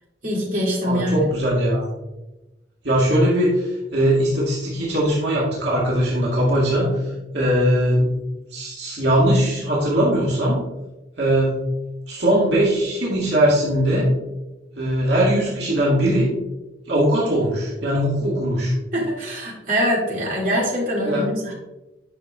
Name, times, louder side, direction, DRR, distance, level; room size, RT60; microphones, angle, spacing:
voice 1, 0.2-1.2 18.9-21.5, equal, 50° right, -5 dB, 2.4 m, -23 dB
voice 2, 0.8-1.8 2.8-7.0 7.3-8.1 8.5-10.6 11.2-11.5 12.1-14.1 14.8-16.3 16.9-18.7 21.0-21.2, right 1 dB, 75° right, -5 dB, 1.9 m, -20 dB
8.7 x 5.8 x 2.3 m, 1.0 s
head